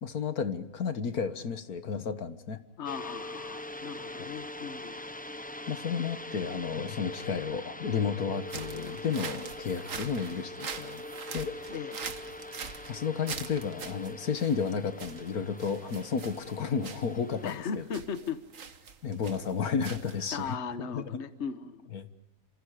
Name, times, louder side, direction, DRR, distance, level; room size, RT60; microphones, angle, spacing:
voice 1, 0.0-2.6 4.2-4.3 5.7-11.0 11.3-11.6 12.9-17.8 19.0-20.6 20.9-21.0 21.9-22.1, left 6 dB, 80° left, 10 dB, 1.9 m, -32 dB
voice 2, 2.8-5.0 11.7-12.0 17.4-18.4 20.3-21.9, left 6 dB, 50° left, 10 dB, 1.4 m, -37 dB
sound 1, 2.8-17.5, left 1 dB, 10° left, 0.5 m, -43 dB
sound 2, 8.4-20.5, right 6 dB, 60° right, 1.7 m, -43 dB
28.5 x 26.5 x 5.0 m, 0.94 s
omnidirectional pair, 1.5 m